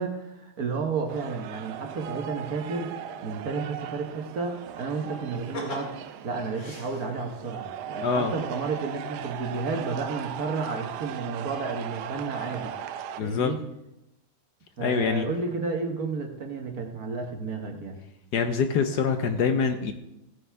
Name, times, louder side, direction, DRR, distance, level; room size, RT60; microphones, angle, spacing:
voice 1, 0.0-2.9 3.2-12.7 13.2-13.6 14.8-18.0, right 4 dB, 50° right, 3 dB, 1.7 m, -32 dB
sound 1, 1.1-13.2, right 9 dB, 70° right, 1.1 m, -38 dB
sound 2, 5.3-7.5 8.9-9.0 9.4-9.9 10.2-10.3, left 2 dB, 85° left, 2.6 m, -41 dB
voice 2, 8.0-8.3 13.2-13.5 14.8-15.3 18.3-19.9, left 6 dB, 65° left, 7 dB, 1.3 m, -25 dB
16.0 x 9.4 x 3.5 m, 0.90 s
omnidirectional pair, 2.1 m